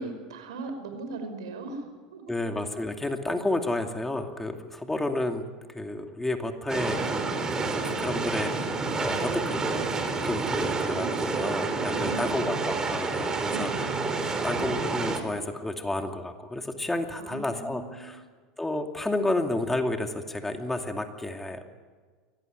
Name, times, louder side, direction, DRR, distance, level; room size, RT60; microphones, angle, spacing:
voice 1, 0.0-2.4 11.9-12.6 13.4-14.0 17.2-18.2, right 3 dB, 80° right, 7 dB, 5.6 m, -39 dB
voice 2, 2.3-5.4 5.7-9.7 10.2-18.2 18.6-21.6, left 2 dB, 10° left, 5 dB, 2.5 m, -31 dB
sound 1, 6.7-15.2, right 3 dB, 25° right, 4.1 m, -29 dB
23.5 x 18.5 x 9.2 m, 1.5 s
hypercardioid pair, 90°, 3 cm